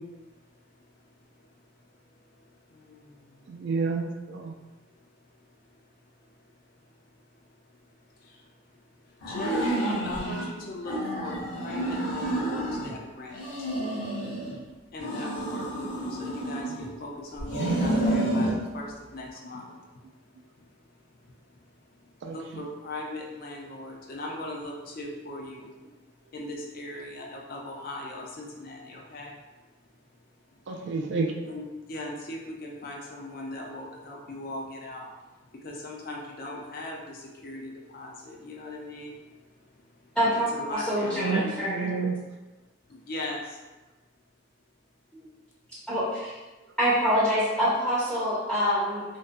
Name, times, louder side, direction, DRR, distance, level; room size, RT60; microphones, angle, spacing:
voice 1, 3.5-4.5 15.6-15.7 22.2-22.7 30.7-31.3 41.1-42.1, right 4 dB, 65° right, 2 dB, 0.3 m, -30 dB
sound 1, 9.2-10.5 10.8-12.9 13.3-14.6 15.0-16.9 17.4-18.6, right 1 dB, 70° left, 1.0 m, -29 dB
voice 2, 9.3-13.4 14.9-18.5 18.7-18.9 19.1-19.6 22.3-25.7 26.3-29.3 31.5-31.6 31.9-35.1 35.6-37.2 37.4-39.2 40.3-41.5 43.1-43.4, left 1 dB, 50° left, -1 dB, 0.5 m, -38 dB
voice 3, 40.1-41.9 45.1-45.2 45.9-46.4 46.8-49.0, equal, 5° left, -12 dB, 0.6 m, -26 dB
2.6 x 2.1 x 2.5 m, 1.2 s
head